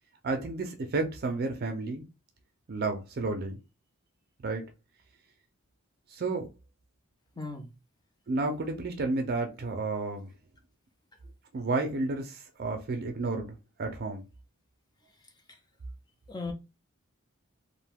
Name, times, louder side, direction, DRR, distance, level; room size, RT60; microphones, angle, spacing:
voice 1, 0.2-2.0 2.7-3.6 4.4-4.6 6.1-6.5 8.3-10.3 11.5-14.2, right 3 dB, 45° right, 0.4 m, -31 dB
voice 2, 7.4-7.7 11.2-11.3 15.2-15.6 16.3-16.5, left 3 dB, 20° left, 0.4 m, -39 dB
2.5 x 2.2 x 3.3 m
head